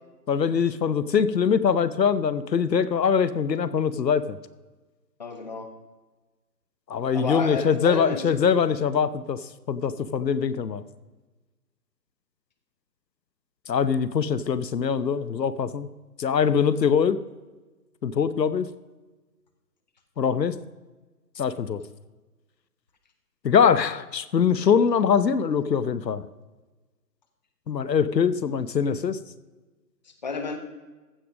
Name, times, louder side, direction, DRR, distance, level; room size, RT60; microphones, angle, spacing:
voice 1, 0.3-4.4 6.9-9.4 9.7-10.8 13.7-15.9 16.2-17.2 18.0-18.7 20.2-20.5 21.4-21.8 23.4-26.2 27.7-29.2, left 7 dB, 85° left, 15 dB, 0.9 m, -23 dB
voice 2, 5.2-5.7 7.1-8.4 30.2-30.6, left 4 dB, 25° left, 6 dB, 0.9 m, -31 dB
15.0 x 6.1 x 5.1 m, 1.2 s
hypercardioid pair, 165°, 49 cm